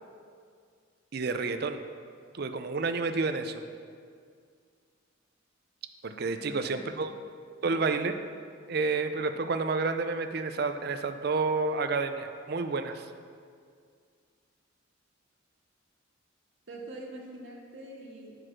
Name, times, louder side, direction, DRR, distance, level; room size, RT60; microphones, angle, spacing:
voice 1, 1.1-1.8 2.4-3.6 6.0-7.1 7.6-8.1 8.7-13.1, right 4 dB, 50° right, 8 dB, 0.5 m, -30 dB
voice 2, 6.3-6.9 16.7-18.4, right 2 dB, 65° right, -2 dB, 1.6 m, -44 dB
9.8 x 4.7 x 6.0 m, 2.2 s
head